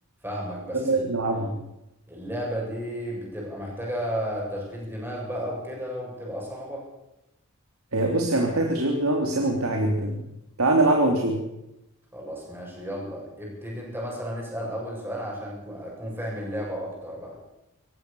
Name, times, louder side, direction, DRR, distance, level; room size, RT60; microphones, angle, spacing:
voice 1, 0.2-1.0 1.3-1.5 2.1-6.9 12.1-17.4, equal, 10° right, -2 dB, 7.6 m, -33 dB
voice 2, 0.7-1.5 7.9-10.2 10.6-11.4, right 2 dB, 80° right, 2 dB, 3.2 m, -23 dB
27.0 x 15.5 x 7.0 m, 0.90 s
head